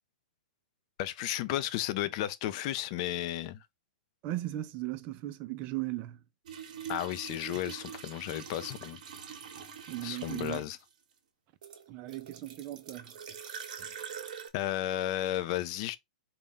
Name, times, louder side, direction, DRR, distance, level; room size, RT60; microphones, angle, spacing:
voice 1, 1.0-3.6 6.9-9.0 10.0-10.8 14.5-16.0, left 13 dB, 40° left, 0.5 m, -33 dB
voice 2, 4.2-6.2 9.9-10.6 11.9-13.1, right 16 dB, 35° right, 0.5 m, -37 dB
sound 1, 6.5-10.9 11.6-14.5, right 7 dB, 60° right, 1.0 m, -44 dB
4.0 x 2.2 x 3.5 m
hypercardioid pair, 140°, 5 cm